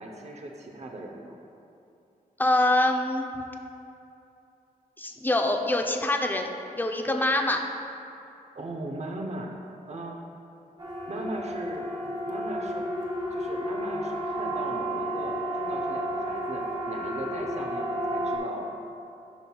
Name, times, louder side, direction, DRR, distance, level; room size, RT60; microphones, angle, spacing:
voice 1, 0.0-1.4 8.5-9.5 9.9-10.2 11.1-11.9 12.3-12.9 13.3-18.7, right 2 dB, 40° right, 1 dB, 0.8 m, -38 dB
voice 2, 2.4-3.3 5.0-6.5 6.7-7.6, left 1 dB, 10° left, 3 dB, 0.6 m, -24 dB
Siren, 10.8-18.4, equal, 25° right, 1.4 m, -31 dB
11.5 x 5.4 x 2.3 m, 2.7 s
cardioid pair, 55°, 17 cm